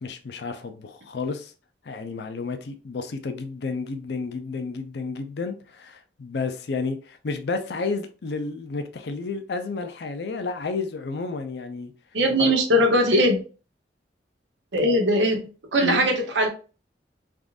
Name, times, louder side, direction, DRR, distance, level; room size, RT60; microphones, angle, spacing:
voice 1, 0.0-1.5 1.9-11.9 12.4-12.5 15.8-16.1, left 4 dB, 65° left, 0.5 m, -31 dB
voice 2, 12.1-13.4 14.7-15.4 15.7-16.5, equal, 80° right, 0.8 m, -20 dB
3.6 x 2.5 x 2.4 m
head